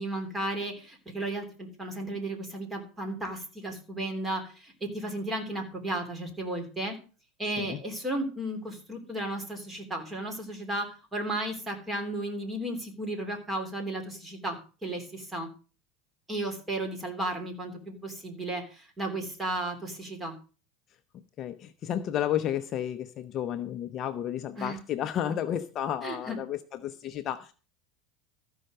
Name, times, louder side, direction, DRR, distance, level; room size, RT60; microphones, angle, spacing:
voice 1, 0.0-6.9 7.4-14.6 14.8-15.5 16.3-20.3 24.6-24.8 25.3-25.4 26.0-26.4, right 1 dB, 10° right, 3 dB, 3.1 m, -34 dB
voice 2, 21.4-27.5, left 10 dB, 35° left, 10 dB, 0.7 m, -32 dB
14.0 x 5.6 x 6.5 m, 0.36 s
supercardioid pair, 145°, 0 cm